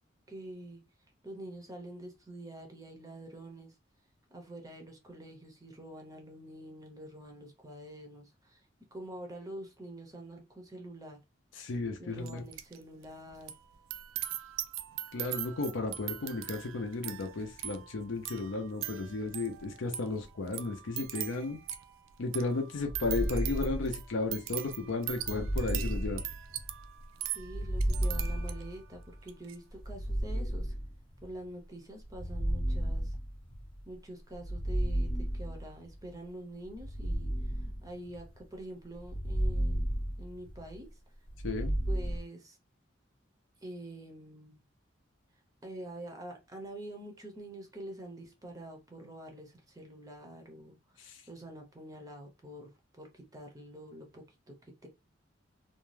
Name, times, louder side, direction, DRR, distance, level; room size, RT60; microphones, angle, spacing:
voice 1, 0.3-0.8 1.2-3.7 4.3-8.6 8.9-11.2 12.0-13.6 27.2-30.7 31.2-33.2 33.9-39.9 40.2-40.9 41.9-42.6 43.6-44.6 45.6-54.9, right 1 dB, 20° right, 0.5 m, -46 dB
voice 2, 11.6-12.4 15.1-21.6 22.2-26.2 41.4-41.8 51.0-51.2, left 3 dB, 80° left, 0.5 m, -34 dB
sound 1, 12.2-12.8 13.0-28.8 29.2-29.6, right 12 dB, 90° right, 0.4 m, -41 dB
sound 2, 22.8-24.4 25.2-26.9 27.4-29.2 29.8-31.3 32.0-33.8 34.4-36.0 36.7-38.4 39.0-40.8 41.3-42.2, right 1 dB, 25° left, 0.7 m, -33 dB
2.5 x 2.2 x 3.1 m
head